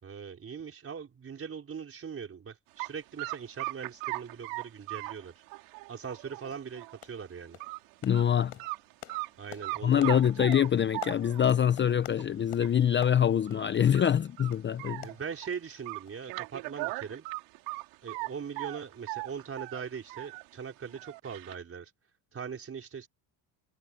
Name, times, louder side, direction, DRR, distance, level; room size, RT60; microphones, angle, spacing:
voice 1, 0.0-5.3 5.9-7.6 9.4-10.5 15.0-17.2 18.0-21.9 22.3-23.1, right 6 dB, 30° right, 4.8 m, -41 dB
sound 1, 2.8-2.9 3.2-7.0 7.4-7.8 8.1-8.2 8.6-9.3 9.6-11.6 12.2-12.3 12.6-12.7 13.0-13.1 13.5-13.7 13.9-15.5 15.9-18.3 18.6-20.4 20.8-21.5, right 24 dB, 90° right, 4.4 m, -38 dB
sound 2, 5.5-5.6 6.0-6.2 6.5-6.7 7.0-7.3 7.5-14.7 15.0-15.8 16.1-16.2 16.5-16.6, left 30 dB, 85° left, 8.0 m, -48 dB
voice 2, 8.0-8.5 9.8-15.1, left 9 dB, 25° left, 0.6 m, -25 dB
cardioid pair, 110°, 42 cm